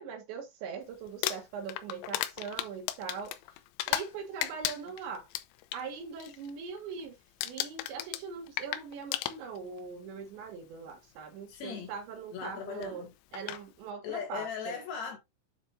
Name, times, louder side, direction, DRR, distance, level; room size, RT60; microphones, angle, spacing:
voice 1, 0.0-3.4 3.9-5.3 5.7-7.2 7.4-13.1 13.3-14.7, right 6 dB, 65° right, 3.7 m, -41 dB
Crumpling crinkling, 1.1-4.1 4.4-5.8 6.2-6.5 6.8-7.1 7.4-9.8 10.7-10.8 12.8-12.9 13.3-13.6, left 14 dB, 80° left, 2.9 m, -35 dB
voice 2, 11.5-11.9 12.3-13.1 14.0-15.2, left 7 dB, 60° left, 3.8 m, -38 dB
9.2 x 7.4 x 2.6 m
omnidirectional pair, 5.9 m